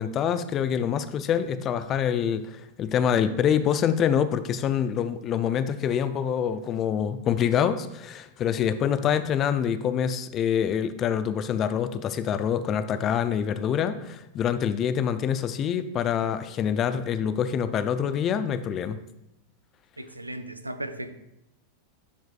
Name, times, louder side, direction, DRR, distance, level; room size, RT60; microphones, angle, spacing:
voice 1, 0.0-19.0, left 8 dB, 30° left, 12 dB, 0.4 m, -26 dB
voice 2, 20.0-21.1, right 1 dB, 85° right, 10 dB, 0.4 m, -36 dB
11.0 x 4.6 x 2.4 m, 0.85 s
figure-of-eight pair, 90°, 0 cm